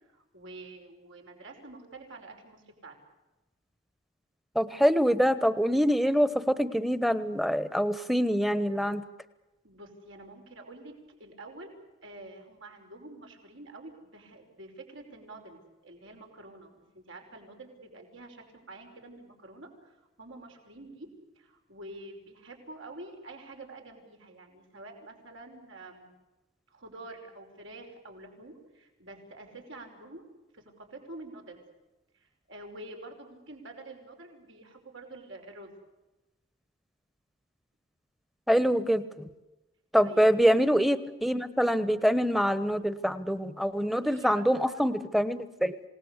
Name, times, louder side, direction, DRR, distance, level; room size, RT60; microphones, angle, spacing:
voice 1, 0.1-3.0 9.6-11.7 12.0-21.1 21.4-26.1 26.7-30.2 30.5-31.6 32.2-35.7 40.0-40.2 44.0-44.9, right 2 dB, 80° right, 2 dB, 5.3 m, -47 dB
voice 2, 4.5-9.0 38.5-39.3 39.9-45.8, equal, ahead, 13 dB, 1.1 m, -25 dB
27.5 x 18.5 x 8.2 m, 1.1 s
head